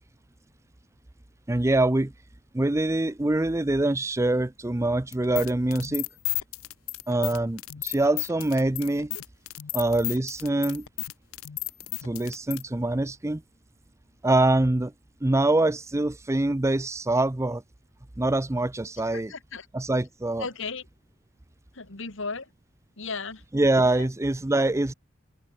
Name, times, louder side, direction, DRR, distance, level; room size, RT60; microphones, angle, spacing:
voice 1, 1.5-2.1 2.5-6.1 7.1-9.1 9.7-10.9 12.0-13.4 14.2-14.9 15.2-17.6 18.2-19.3 19.7-20.5 23.5-24.9, right 2 dB, 15° right, 0.6 m, -24 dB
sound 1, 5.1-12.6, left 19 dB, 85° left, 0.6 m, -33 dB
voice 2, 19.1-19.7 20.4-20.8 21.7-22.5 23.0-23.4, left 4 dB, 65° left, 2.6 m, -35 dB
head